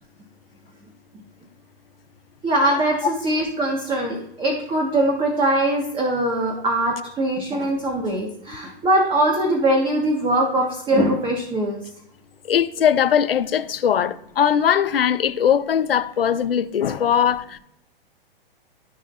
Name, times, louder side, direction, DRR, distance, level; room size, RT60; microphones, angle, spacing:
voice 1, 2.4-11.8, right 1 dB, 15° right, 1.5 m, -22 dB
voice 2, 12.5-17.6, left 8 dB, 70° left, 0.8 m, -20 dB
15.5 x 5.1 x 2.6 m
figure-of-eight pair, 120°, 30 cm